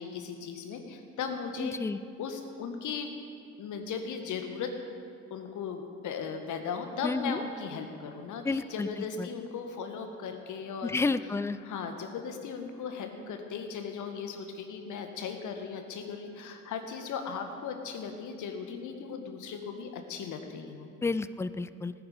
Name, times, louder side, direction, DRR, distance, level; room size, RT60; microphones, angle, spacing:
voice 1, 0.0-1.8 2.2-3.1 3.6-4.8 5.3-11.0 11.6-20.9, left 6 dB, 55° left, 6 dB, 1.7 m, -37 dB
voice 2, 1.6-2.0 7.0-7.4 8.4-8.9 9.2-9.3 10.8-11.6 21.0-21.9, left 3 dB, 10° left, 15 dB, 0.4 m, -30 dB
17.5 x 10.0 x 5.4 m, 2.5 s
hypercardioid pair, 55°, 37 cm